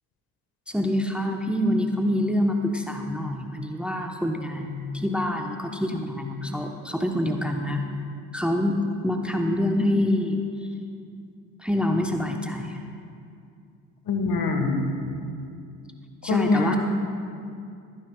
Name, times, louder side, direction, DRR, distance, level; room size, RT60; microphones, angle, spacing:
voice 1, 0.7-7.8 8.3-10.4 11.6-12.8 16.2-16.8, left 1 dB, ahead, 3 dB, 1.0 m, -26 dB
voice 2, 14.1-14.8 16.2-16.8, left 3 dB, 55° left, 5 dB, 1.6 m, -24 dB
21.5 x 10.0 x 2.4 m, 2.4 s
hypercardioid pair, 50°, 43 cm